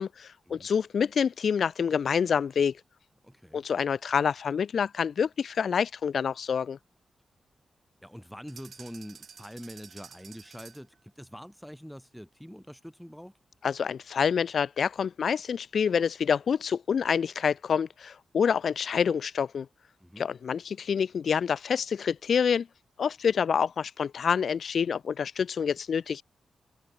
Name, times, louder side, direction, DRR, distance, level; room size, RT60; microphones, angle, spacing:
voice 1, 0.0-2.7 3.5-6.8 13.6-19.7 20.2-22.7 23.0-26.2, left 7 dB, 70° left, 0.6 m, -27 dB
voice 2, 3.2-3.6 8.0-13.3 20.0-20.3, equal, ahead, 3.4 m, -45 dB
sound 1, 8.5-11.0, right 6 dB, 65° right, 3.5 m, -50 dB
cardioid pair, 85°, 0 cm